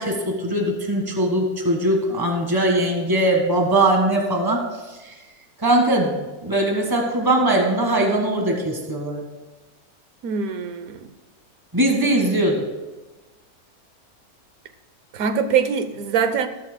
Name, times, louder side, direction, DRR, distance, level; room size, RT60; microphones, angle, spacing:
voice 1, 0.0-4.6 5.6-9.3 11.7-12.6, right 1 dB, 15° right, 1 dB, 1.6 m, -20 dB
voice 2, 10.2-11.1 15.1-16.5, right 6 dB, 70° right, 10 dB, 1.2 m, -23 dB
15.5 x 13.0 x 2.2 m, 1.2 s
omnidirectional pair, 1.6 m